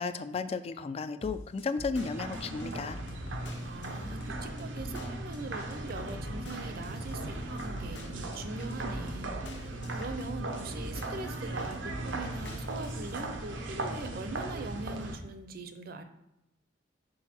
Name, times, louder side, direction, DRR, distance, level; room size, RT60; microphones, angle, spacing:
voice 1, 0.0-3.0, left 4 dB, 30° left, 12 dB, 0.3 m, -34 dB
sound 1, 1.2-13.2, left 1 dB, 65° left, 1.0 m, -44 dB
sound 2, 2.0-15.2, right 2 dB, 90° right, 0.9 m, -38 dB
voice 2, 3.6-9.3 9.8-16.0, right 3 dB, 50° right, 8 dB, 0.6 m, -42 dB
6.3 x 4.4 x 4.4 m, 0.87 s
head